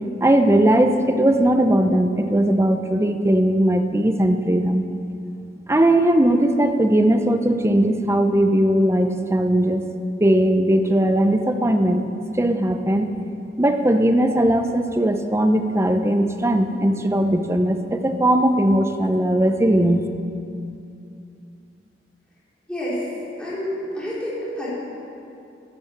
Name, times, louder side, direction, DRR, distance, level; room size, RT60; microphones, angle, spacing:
voice 1, 0.2-4.8 5.7-9.8 10.2-12.1 12.4-13.1 13.6-20.0, right 1 dB, 15° right, 7 dB, 0.7 m, -19 dB
voice 2, 22.7-23.1 23.4-24.7, equal, 5° left, -9 dB, 4.4 m, -28 dB
12.5 x 10.5 x 7.4 m, 2.6 s
head